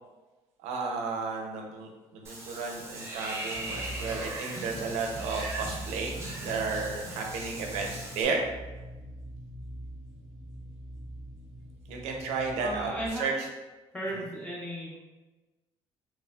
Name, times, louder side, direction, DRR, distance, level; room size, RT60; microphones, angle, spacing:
voice 1, 0.6-8.4 11.9-12.9 13.2-13.3, right 4 dB, 85° right, 2 dB, 0.5 m, -33 dB
Water / Bathtub (filling or washing), 2.2-8.2, right 2 dB, 25° right, 0.7 m, -39 dB
sound 1, 3.5-13.1, right 1 dB, 85° left, 1.0 m, -43 dB
voice 2, 12.6-13.4 13.9-15.0, right 1 dB, 15° left, -6 dB, 0.9 m, -35 dB
3.0 x 2.4 x 2.2 m, 1.1 s
cardioid pair, 110°, 11 cm